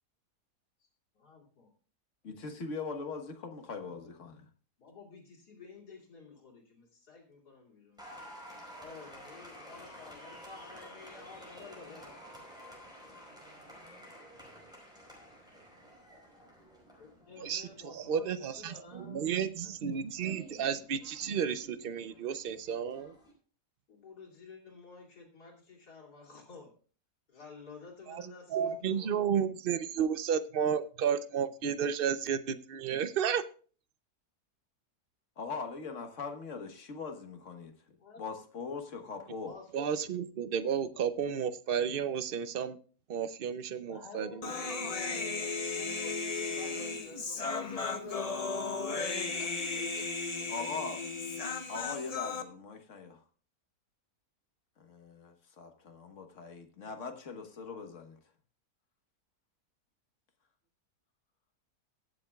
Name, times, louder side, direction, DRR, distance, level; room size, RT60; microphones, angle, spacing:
voice 1, 1.2-1.7 3.8-4.4 4.8-8.1 8.8-12.2 17.0-19.3 19.6-20.4 23.9-26.7 27.3-29.5 38.0-38.3 39.4-40.1 43.9-48.7 49.2-50.5, left 4 dB, 75° left, -2 dB, 3.3 m, -51 dB
voice 2, 2.2-4.5 8.5-8.6 35.4-37.7 38.2-39.5 50.5-51.0 51.7-53.2 54.8-58.2, left 4 dB, 50° left, 5 dB, 1.6 m, -41 dB
Applause, 8.0-23.3, equal, ahead, 4.7 m, -52 dB
voice 3, 17.4-23.1 28.1-28.2 28.5-33.4 39.7-42.8 43.1-44.5, right 7 dB, 60° right, 12 dB, 0.6 m, -32 dB
Human voice, 44.4-52.4, left 4 dB, 30° left, 0.7 m, -35 dB
23.0 x 7.6 x 2.3 m, 0.41 s
omnidirectional pair, 1.7 m